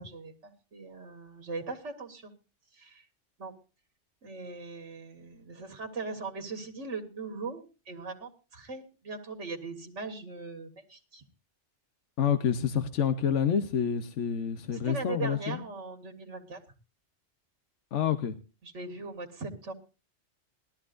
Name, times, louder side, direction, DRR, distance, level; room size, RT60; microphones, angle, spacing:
voice 1, 0.0-2.3 2.7-3.0 3.4-3.5 4.2-11.2 14.7-16.6 18.6-19.7, right 3 dB, 90° right, 5 dB, 1.9 m, -40 dB
voice 2, 12.2-15.6 17.9-18.4, left 8 dB, 85° left, 9 dB, 1.2 m, -28 dB
20.0 x 13.5 x 2.5 m, 0.32 s
omnidirectional pair, 1.2 m